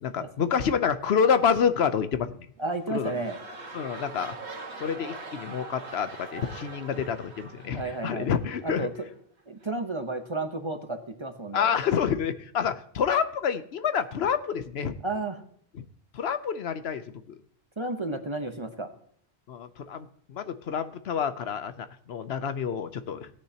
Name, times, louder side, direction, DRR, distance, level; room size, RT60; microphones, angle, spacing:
voice 1, 0.0-2.4 2.9-3.1 3.7-4.4 4.8-8.9 11.5-15.0 15.8-15.9 16.1-17.4 19.5-23.3, left 7 dB, 70° left, 11 dB, 1.0 m, -28 dB
voice 2, 2.6-3.4 7.7-8.3 8.6-9.1 9.5-11.7 15.0-15.4 17.8-18.9, right 2 dB, 30° right, 6 dB, 0.9 m, -32 dB
sound 1, 2.6-8.9 9.6-9.7, right 3 dB, 85° right, 2.0 m, -42 dB
16.5 x 9.9 x 2.8 m, 0.63 s
omnidirectional pair, 1.1 m